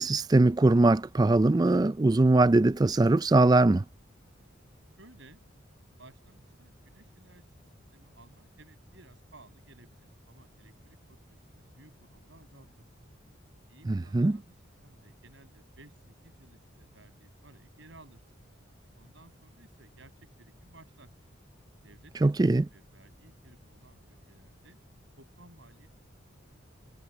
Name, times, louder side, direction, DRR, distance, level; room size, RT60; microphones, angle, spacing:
voice 1, 0.0-3.8 13.9-14.4 22.2-22.6, right 2 dB, 20° right, 0.4 m, -21 dB
voice 2, 5.0-5.4 6.0-7.5 7.9-12.7 13.7-14.6 14.8-18.2 18.9-21.1 21.8-24.8 25.2-25.9, right 2 dB, 65° right, 7.5 m, -57 dB
head